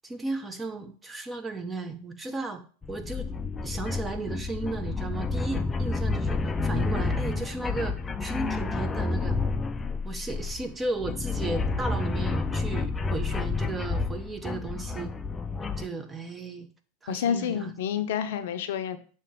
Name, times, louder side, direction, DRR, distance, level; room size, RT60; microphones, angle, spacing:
voice 1, 0.0-2.6 2.9-3.3 3.6-9.4 10.0-15.1 15.7-16.7 17.0-18.1, right 3 dB, 15° right, 7 dB, 0.8 m, -35 dB
sound 1, 2.8-15.9, left 3 dB, 20° left, 0.4 m, -30 dB
voice 2, 17.1-19.0, left 8 dB, 70° left, 9 dB, 0.6 m, -29 dB
6.8 x 2.9 x 4.9 m, 0.42 s
hypercardioid pair, 100°, 0 cm